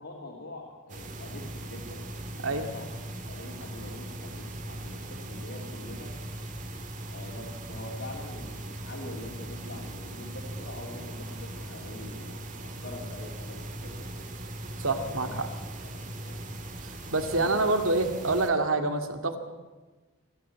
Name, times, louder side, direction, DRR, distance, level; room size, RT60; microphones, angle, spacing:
voice 1, 0.0-2.9 3.3-6.2 7.1-14.3 15.0-15.3 15.8-16.4 17.3-17.5, left 1 dB, 65° left, -3 dB, 3.3 m, -44 dB
sound 1, 0.9-18.5, right 1 dB, 40° right, 2.0 m, -39 dB
voice 2, 14.8-15.5 16.8-19.4, right 2 dB, 80° right, 6 dB, 2.3 m, -27 dB
26.0 x 12.5 x 8.7 m, 1.3 s
head